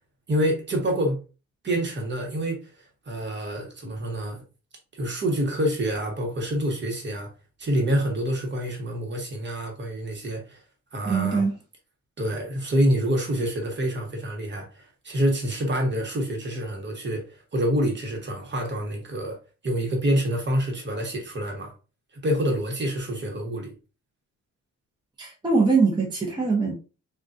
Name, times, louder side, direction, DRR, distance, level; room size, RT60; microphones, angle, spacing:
voice 1, 0.3-1.2 1.6-4.4 5.0-7.3 7.6-10.6 10.9-11.4 12.2-19.4 19.6-21.7 22.2-23.7, equal, 35° right, 1.2 m, -27 dB
voice 2, 11.1-11.5 25.2-26.7, right 4 dB, 15° right, 0.9 m, -22 dB
3.7 x 2.4 x 2.5 m
cardioid pair, 90°, 30 cm